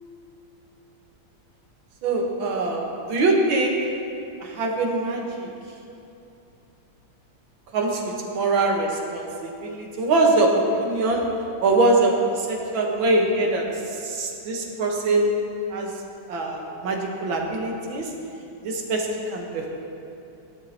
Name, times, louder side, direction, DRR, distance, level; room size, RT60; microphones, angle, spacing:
voice 1, 2.0-3.8 4.4-5.5 7.7-11.2 11.6-13.7 14.0-15.3 15.7-15.9 16.3-18.1 18.6-19.7, right 2 dB, 80° right, 0 dB, 2.1 m, -23 dB
17.0 x 11.0 x 2.9 m, 2.7 s
omnidirectional pair, 2.1 m